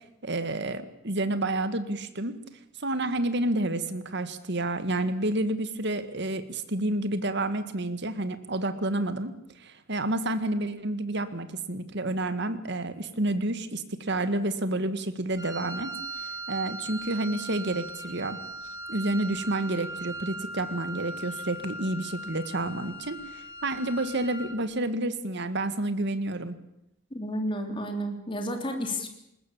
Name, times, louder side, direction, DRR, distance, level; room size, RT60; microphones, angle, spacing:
voice 1, 0.2-2.4 2.8-9.3 9.6-15.9 16.2-18.4 18.9-26.6, right 2 dB, 60° right, 11 dB, 1.9 m, -29 dB
Wind instrument woodwind instrument, 15.4-24.6, right 2 dB, 20° right, 4.9 m, -39 dB
voice 2, 27.1-29.1, equal, 25° left, 4 dB, 3.2 m, -31 dB
21.0 x 20.0 x 8.8 m, 0.83 s
head